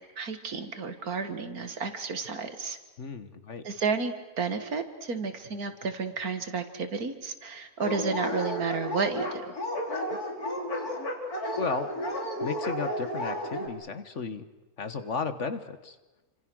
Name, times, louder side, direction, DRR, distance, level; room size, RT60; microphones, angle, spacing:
voice 1, 0.2-2.8 3.6-9.6, right 5 dB, 70° right, 9 dB, 2.3 m, -32 dB
voice 2, 3.0-3.6 10.1-10.2 11.6-11.9 12.4-14.4 14.8-16.0, left 5 dB, 50° left, 10 dB, 1.6 m, -34 dB
Dog, 7.8-13.7, equal, 70° left, 4.0 m, -32 dB
28.5 x 26.0 x 6.3 m, 1.1 s
omnidirectional pair, 1.6 m